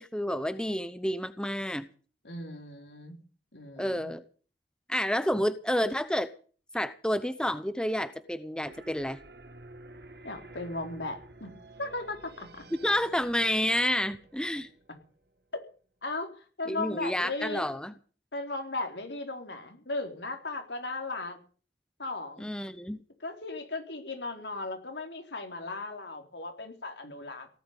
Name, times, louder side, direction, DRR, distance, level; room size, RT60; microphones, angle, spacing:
voice 1, 0.0-1.9 3.8-4.2 4.9-6.3 6.7-9.2 12.8-14.7 16.7-17.9 22.4-23.0, equal, 5° left, 12 dB, 0.9 m, -29 dB
voice 2, 2.2-3.2 3.5-4.1 10.2-11.5 11.8-12.6 15.5-15.6 16.0-17.6 18.3-21.4 22.0-22.5 23.2-27.5, left 2 dB, 85° left, 5 dB, 4.1 m, -37 dB
sound 1, 8.6-15.4, right 2 dB, 65° right, 1.7 m, -51 dB
18.0 x 8.6 x 9.1 m, 0.40 s
head